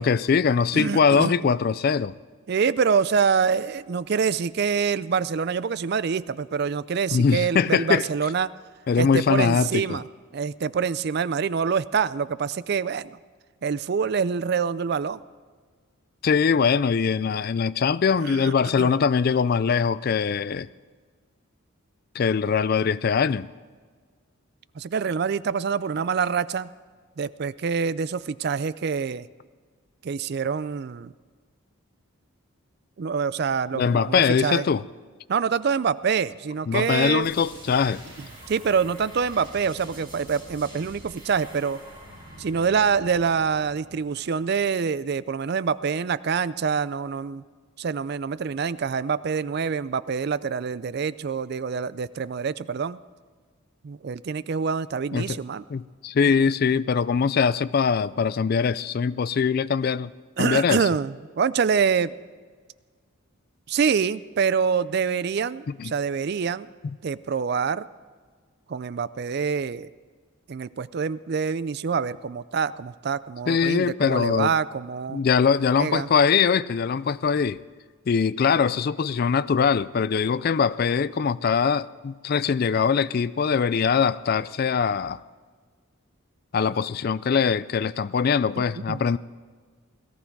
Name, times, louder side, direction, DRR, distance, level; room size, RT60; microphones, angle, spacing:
voice 1, 0.0-2.1 7.1-8.1 8.9-10.0 16.2-20.7 22.1-23.5 33.7-34.8 36.7-38.0 55.1-55.4 55.7-60.1 60.4-60.9 65.8-65.9 73.5-74.5 75.1-77.6 78.1-85.2 86.5-89.2, left 6 dB, 45° left, 18 dB, 0.3 m, -22 dB
voice 2, 0.7-1.3 2.5-8.5 9.0-10.0 10.3-13.2 13.6-15.2 18.2-18.9 24.8-26.7 27.2-29.3 30.0-31.1 33.0-34.6 35.3-37.3 38.5-41.8 42.4-47.4 47.8-53.0 53.8-55.6 56.2-56.5 60.4-62.1 63.7-66.7 67.0-67.9 68.7-69.9 70.5-75.2 75.8-76.1 88.6-89.0, right 6 dB, 50° right, 17 dB, 0.4 m, -26 dB
sound 1, 37.2-44.8, right 1 dB, 20° right, 5.5 m, -45 dB
17.5 x 14.5 x 4.6 m, 1.5 s
head